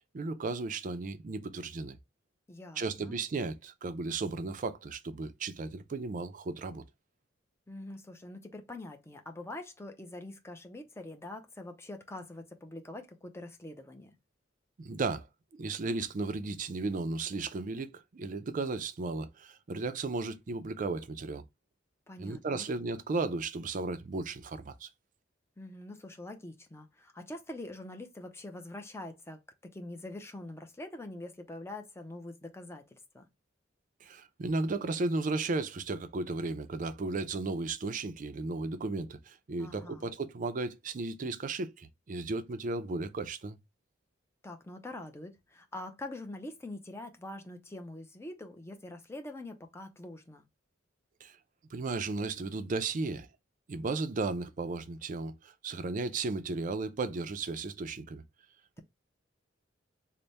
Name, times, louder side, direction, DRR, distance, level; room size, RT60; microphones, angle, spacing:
voice 1, 0.1-2.0 2.8-6.8 14.8-15.3 15.5-21.4 22.2-24.9 34.0-43.6 51.2-51.4 51.7-53.3 53.7-58.2, right 3 dB, 40° right, 0.4 m, -35 dB
voice 2, 2.5-3.2 7.7-14.2 22.1-22.7 25.6-33.3 39.6-40.1 44.4-50.5, left 1 dB, 15° left, 0.5 m, -44 dB
3.3 x 2.1 x 3.9 m
head